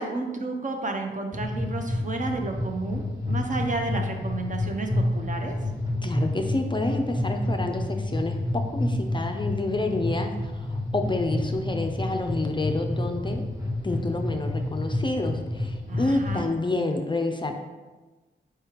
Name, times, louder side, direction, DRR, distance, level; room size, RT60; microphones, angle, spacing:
voice 1, 0.0-5.6 15.9-16.5, right 3 dB, 40° right, 4 dB, 0.6 m, -31 dB
sound 1, 1.3-16.5, left 1 dB, 15° right, 1.4 m, -29 dB
voice 2, 6.0-13.4 13.8-17.6, left 2 dB, 25° left, 4 dB, 0.4 m, -28 dB
4.7 x 3.4 x 2.9 m, 1.2 s
cardioid pair, 50°, 20 cm